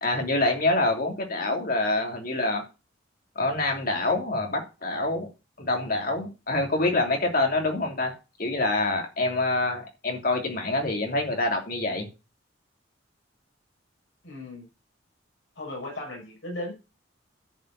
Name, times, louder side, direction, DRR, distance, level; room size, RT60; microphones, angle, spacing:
voice 1, 0.0-2.6 3.3-5.3 5.6-8.1 8.4-12.1, left 2 dB, 45° left, 2 dB, 3.1 m, -26 dB
voice 2, 14.2-14.7 15.6-16.7, left 1 dB, 65° left, 0 dB, 5.8 m, -36 dB
11.0 x 5.7 x 8.2 m, 0.30 s
head